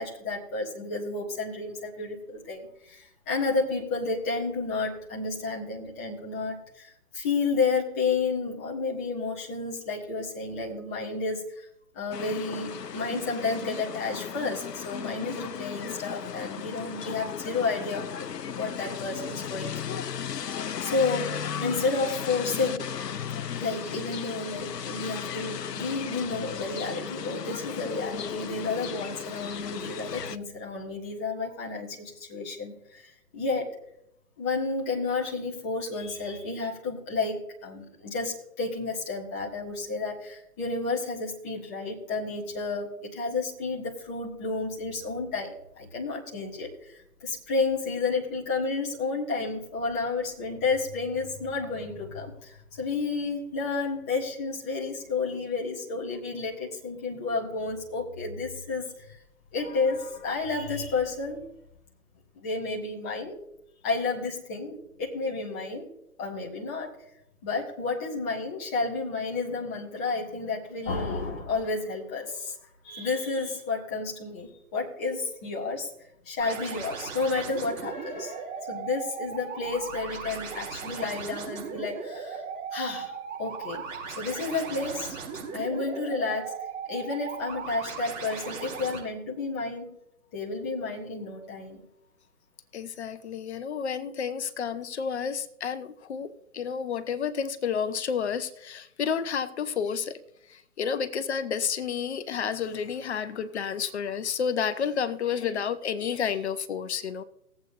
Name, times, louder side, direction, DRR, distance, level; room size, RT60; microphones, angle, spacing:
voice 1, 0.0-11.7 11.9-18.1 18.4-22.9 23.5-33.8 34.4-59.2 59.5-61.5 62.3-63.4 63.8-65.9 66.2-67.0 67.4-72.6 72.8-75.9 76.2-82.4 82.7-83.9 84.2-85.2 85.5-86.5 86.9-90.0 90.3-91.8, left 3 dB, 10° left, -4 dB, 0.5 m, -31 dB
sound 1, 12.1-30.4, left 8 dB, 90° left, 0.7 m, -36 dB
sound 2, 76.4-89.0, right 5 dB, 55° right, 4.3 m, -37 dB
voice 2, 92.7-100.2 100.5-107.2, left 7 dB, 45° left, 11 dB, 0.8 m, -30 dB
19.5 x 8.0 x 2.6 m, 0.81 s
figure-of-eight pair, 135°, 47 cm